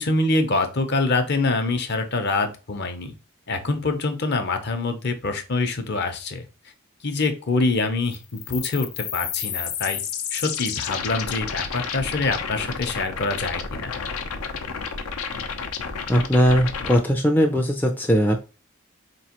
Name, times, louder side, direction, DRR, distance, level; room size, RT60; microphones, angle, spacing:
voice 1, 0.0-3.1 3.5-6.5 7.0-10.0 10.3-13.9, left 3 dB, 50° left, 7 dB, 0.7 m, -25 dB
sound 1, 8.1-17.0, left 6 dB, 85° left, 0.6 m, -31 dB
voice 2, 16.1-18.4, equal, 10° left, 2 dB, 0.4 m, -19 dB
4.3 x 3.0 x 2.9 m, 0.32 s
head